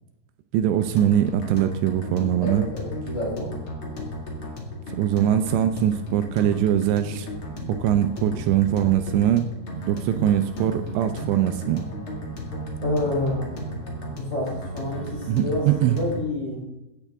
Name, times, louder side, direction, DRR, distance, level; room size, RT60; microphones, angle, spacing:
voice 1, 0.5-2.7 5.0-7.3 7.8-9.5 9.9-11.9 15.3-16.0, right 11 dB, 80° right, 10 dB, 2.7 m, -22 dB
sound 1, 0.8-16.2, right 1 dB, 40° left, 2.1 m, -34 dB
voice 2, 2.4-3.6 12.8-16.6, left 1 dB, 20° left, -4 dB, 3.6 m, -29 dB
16.5 x 9.2 x 3.5 m, 0.97 s
omnidirectional pair, 5.0 m